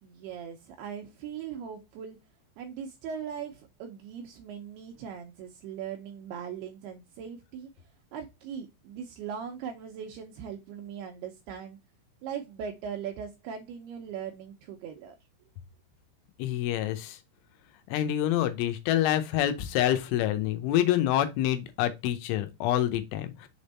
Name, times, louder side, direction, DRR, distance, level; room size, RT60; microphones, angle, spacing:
voice 1, 0.0-2.2 2.6-7.7 8.1-11.8 12.2-15.2, right 7 dB, 90° right, 2.3 m, -39 dB
voice 2, 16.4-17.2 17.9-23.5, left 12 dB, 85° left, 3.3 m, -27 dB
7.1 x 3.5 x 4.1 m
omnidirectional pair, 5.5 m